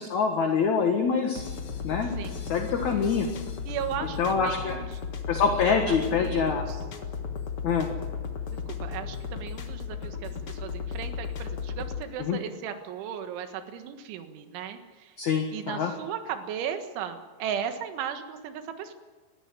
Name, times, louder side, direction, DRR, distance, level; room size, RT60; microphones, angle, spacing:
voice 1, 0.0-1.4 1.8-2.2 2.4-3.3 4.2-4.8 5.3-6.6 7.6-7.9 12.2-12.4 15.2-15.9, left 6 dB, 60° left, 4 dB, 2.1 m, -25 dB
sound 1, 1.3-12.0, left 6 dB, 80° left, 1.2 m, -35 dB
voice 2, 2.2-2.6 3.7-5.0 5.5-5.6 5.9-6.8 8.5-15.1 15.5-18.9, right 8 dB, 80° right, 7 dB, 3.9 m, -36 dB
21.5 x 15.5 x 9.7 m, 1.3 s
omnidirectional pair, 5.4 m